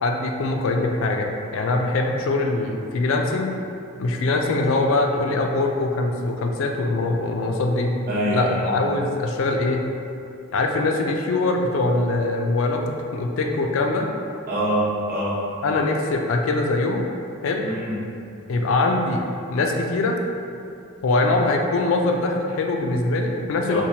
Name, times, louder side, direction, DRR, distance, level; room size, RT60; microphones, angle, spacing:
voice 1, 0.0-3.5 4.0-7.9 8.3-9.9 10.5-14.1 15.6-17.1 17.4-17.6 18.5-20.2 21.0-23.8, left 2 dB, 65° left, 2 dB, 0.3 m, -22 dB
voice 2, 8.1-8.6 14.5-15.4 17.6-18.0 23.7-23.8, right 1 dB, 45° right, -9 dB, 0.7 m, -24 dB
4.4 x 2.2 x 2.7 m, 2.6 s
head